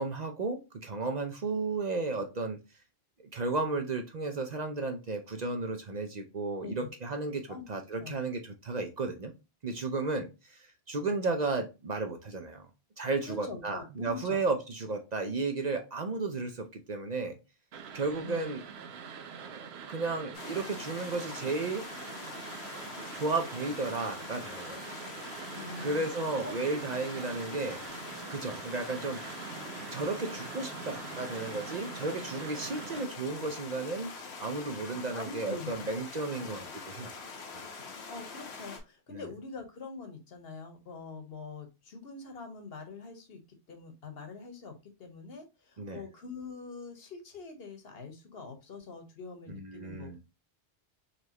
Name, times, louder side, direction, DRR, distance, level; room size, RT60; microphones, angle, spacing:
voice 1, 0.0-2.6 3.3-9.3 9.6-10.6 10.9-12.7 13.0-17.4 17.9-18.6 19.4-21.8 23.1-24.8 25.8-27.8 28.3-29.2 29.9-34.1 34.4-37.1 39.1-39.2 45.8-46.0 49.5-50.2, right 3 dB, 45° right, 5 dB, 0.7 m, -33 dB
voice 2, 6.6-6.9 7.5-7.6 8.0-8.2 13.3-14.4 18.2-18.5 25.5-26.1 26.4-26.5 35.1-35.7 36.4-36.6 38.1-43.4 43.7-44.7 45.0-50.2, left 4 dB, 65° left, 5 dB, 1.2 m, -44 dB
sound 1, 17.7-33.1, right 7 dB, 75° right, 0.9 m, -44 dB
sound 2, 20.3-38.8, left 4 dB, 85° left, 1.2 m, -44 dB
4.1 x 3.2 x 2.8 m, 0.27 s
omnidirectional pair, 1.1 m